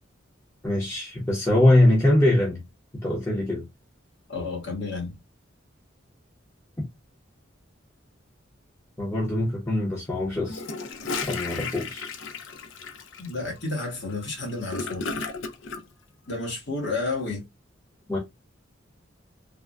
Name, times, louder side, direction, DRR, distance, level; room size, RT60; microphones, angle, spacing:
voice 1, 0.6-2.6 2.9-3.6 9.0-10.6 11.2-12.1 18.1-18.2, left 1 dB, 15° left, 0.7 m, -22 dB
voice 2, 4.3-5.1 13.2-15.2 16.3-17.4, left 3 dB, 60° left, 1.3 m, -31 dB
Gurgling / Toilet flush, 10.4-15.8, left 4 dB, 80° left, 0.5 m, -34 dB
3.4 x 2.1 x 2.4 m
head